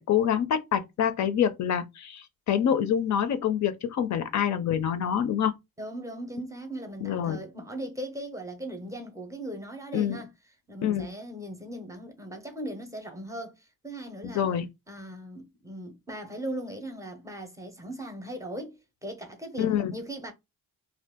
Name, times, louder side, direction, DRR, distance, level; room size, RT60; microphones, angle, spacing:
voice 1, 0.0-5.6 7.0-7.4 9.9-10.2 10.8-11.1 14.2-14.7 19.6-19.9, left 9 dB, 55° left, 0.5 m, -26 dB
voice 2, 5.8-10.3 10.7-14.5 14.9-20.3, right 1 dB, 10° right, 0.6 m, -38 dB
2.6 x 2.4 x 3.5 m
cardioid pair, 150°, 35 cm